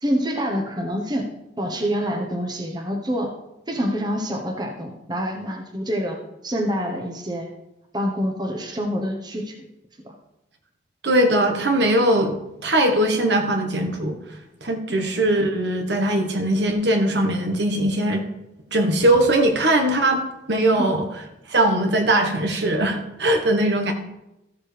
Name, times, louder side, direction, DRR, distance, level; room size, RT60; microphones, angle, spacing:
voice 1, 0.0-1.3 1.6-3.3 3.7-6.2 6.4-7.5 7.9-9.5 10.0-10.1 14.9-15.0 20.8-20.9, equal, 25° right, 2 dB, 1.1 m, -26 dB
voice 2, 11.0-12.3 12.6-14.2 14.6-18.2 18.7-20.2 20.5-21.1 21.5-23.9, right 1 dB, 65° right, 3 dB, 1.3 m, -20 dB
14.5 x 7.2 x 3.4 m, 0.90 s
head